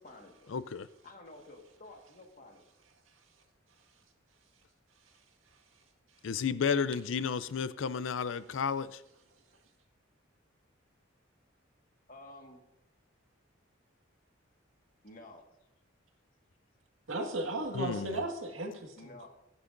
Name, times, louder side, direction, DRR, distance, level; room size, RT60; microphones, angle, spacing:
voice 1, 0.0-0.6 1.0-2.6 12.1-12.7 15.0-15.5 19.0-19.3, left 2 dB, 45° left, 1.7 m, -51 dB
voice 2, 0.5-0.9 6.2-9.0 17.7-18.2, left 6 dB, 75° left, 0.4 m, -32 dB
voice 3, 17.1-19.3, right 2 dB, 85° right, 1.8 m, -35 dB
20.0 x 9.6 x 2.6 m
head